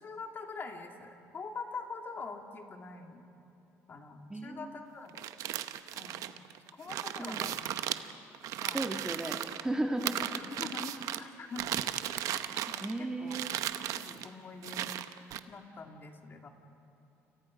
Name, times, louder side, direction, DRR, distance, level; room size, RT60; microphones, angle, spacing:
voice 1, 0.0-3.3 3.9-5.3 5.9-6.2 6.7-7.7 8.6-8.8 10.0-11.6 12.7-13.4 13.9-15.1 15.5-16.5, left 4 dB, 40° left, 4 dB, 2.5 m, -44 dB
voice 2, 4.3-4.8 7.2-7.5 8.7-10.3 12.8-13.5, right 1 dB, 10° right, 4 dB, 1.6 m, -35 dB
sound 1, 5.1-9.6 10.0-11.2 11.5-13.0 13.3-14.3 14.6-15.4, right 12 dB, 75° right, 0.9 m, -36 dB
29.5 x 27.5 x 5.2 m, 2.8 s
cardioid pair, 95°, 6 cm